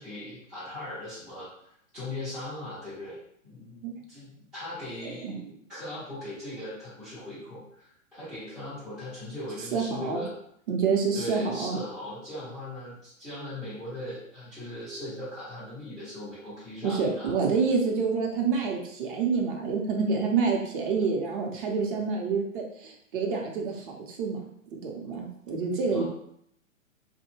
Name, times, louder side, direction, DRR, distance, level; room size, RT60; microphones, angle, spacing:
voice 1, 0.0-1.5 1.9-3.2 3.4-10.3 11.1-17.3 25.9-26.0, left 1 dB, ahead, -14 dB, 0.3 m, -39 dB
voice 2, 5.0-5.3 9.7-10.2 10.7-11.8 16.8-24.4 24.8-26.0, right 5 dB, 40° right, 0 dB, 0.7 m, -27 dB
2.7 x 2.1 x 3.0 m, 0.70 s
hypercardioid pair, 125°, 40 cm